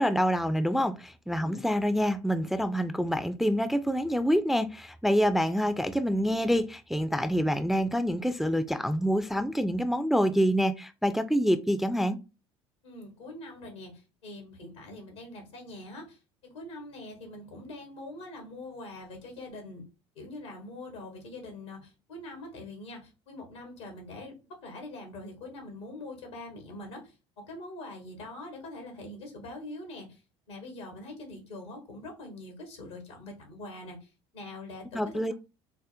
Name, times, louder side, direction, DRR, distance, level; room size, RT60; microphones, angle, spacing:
voice 1, 0.0-12.2 34.9-35.3, equal, ahead, 0.3 m, -26 dB
voice 2, 1.4-1.7 12.8-19.9 20.1-30.2 30.5-35.3, left 2 dB, 90° left, 1.2 m, -44 dB
4.9 x 2.1 x 2.5 m
hypercardioid pair, 70°, 15 cm